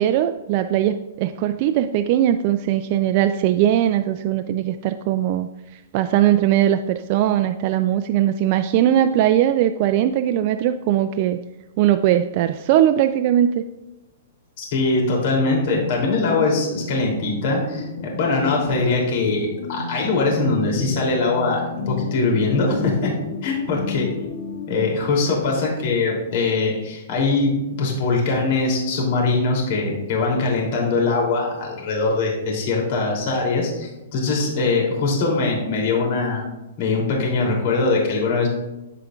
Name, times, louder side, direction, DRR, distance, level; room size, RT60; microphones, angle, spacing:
voice 1, 0.0-5.5 5.9-11.4 11.8-13.6, right 11 dB, 40° right, 9 dB, 0.3 m, -20 dB
voice 2, 14.6-17.9 18.1-23.1 23.4-24.1 24.7-36.4 36.8-38.5, left 3 dB, 50° left, -1 dB, 2.8 m, -22 dB
sound 1, 15.7-24.8, left 4 dB, 80° left, 2.0 m, -32 dB
14.0 x 5.0 x 2.4 m, 1.0 s
hypercardioid pair, 150°, 0 cm